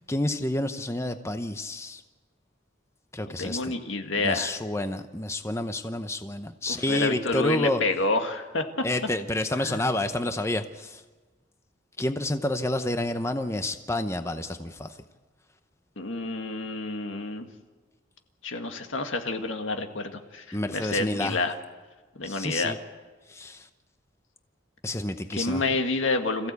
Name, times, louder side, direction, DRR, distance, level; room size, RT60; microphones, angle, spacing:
voice 1, 0.1-2.0 3.1-3.7 4.1-7.8 8.8-11.0 12.0-15.0 20.5-21.4 22.2-22.8 23.3-23.7 24.8-25.6, left 1 dB, 15° left, 8 dB, 0.8 m, -29 dB
voice 2, 3.3-4.6 6.7-8.9 9.6-9.8 16.0-17.5 18.4-21.5 22.2-22.7 25.3-26.5, left 3 dB, 85° left, 5 dB, 1.9 m, -29 dB
26.5 x 15.5 x 8.2 m, 1.3 s
head